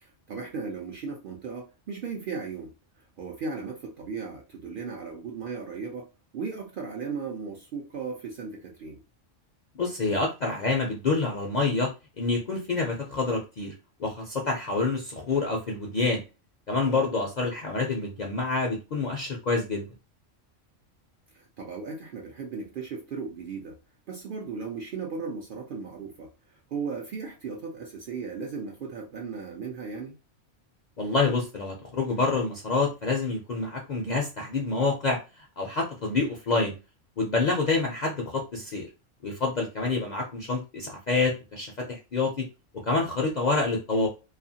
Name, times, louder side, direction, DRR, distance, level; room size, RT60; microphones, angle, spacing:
voice 1, 0.0-9.0 21.3-23.8 24.1-30.2, right 5 dB, 60° right, 0.5 m, -36 dB
voice 2, 9.8-11.9 12.2-13.7 14.0-16.2 16.7-19.9 31.0-36.7 37.2-38.9 39.2-42.4 42.8-44.1, left 3 dB, 55° left, 0.5 m, -27 dB
2.6 x 2.4 x 2.6 m
omnidirectional pair, 1.3 m